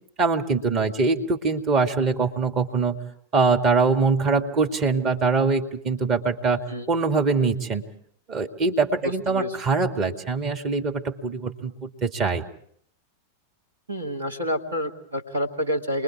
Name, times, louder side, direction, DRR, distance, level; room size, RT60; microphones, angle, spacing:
voice 1, 0.2-3.0 3.3-6.6 6.9-7.8 8.3-12.4, right 4 dB, 35° right, 2 dB, 2.1 m, -23 dB
voice 2, 9.0-9.5 13.9-16.0, equal, 70° right, 5 dB, 2.4 m, -28 dB
28.5 x 22.0 x 4.8 m, 0.66 s
figure-of-eight pair, 90°, 0 cm